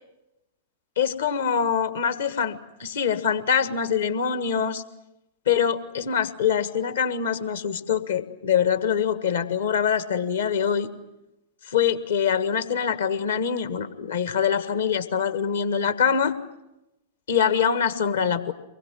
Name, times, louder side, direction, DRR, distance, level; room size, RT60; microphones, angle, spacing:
voice 1, 1.0-4.8 5.5-10.9 11.7-16.3 17.3-18.5, left 7 dB, 65° left, 11 dB, 1.6 m, -24 dB
24.5 x 21.0 x 9.2 m, 0.93 s
figure-of-eight pair, 100°, 0 cm